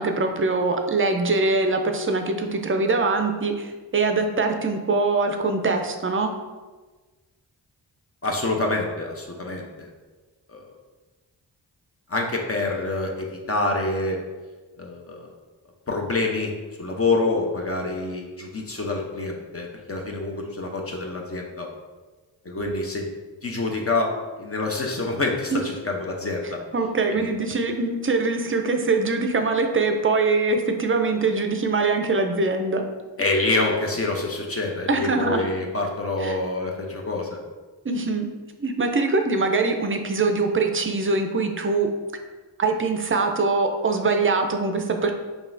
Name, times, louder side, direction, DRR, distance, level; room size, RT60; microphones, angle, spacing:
voice 1, 0.0-6.3 25.5-25.6 26.4-32.8 34.9-35.4 36.2-36.4 37.8-38.3 38.6-41.9 42.6-45.1, right 3 dB, 30° right, 5 dB, 0.5 m, -23 dB
voice 2, 8.2-9.9 10.5-10.6 12.1-14.2 14.8-15.3 15.9-16.5 16.8-21.7 22.4-23.1 23.4-24.1 24.4-26.6 27.1-27.3 33.2-37.4, left 2 dB, 30° left, 0 dB, 0.8 m, -26 dB
5.3 x 2.4 x 2.6 m, 1.3 s
cardioid pair, 45°, 46 cm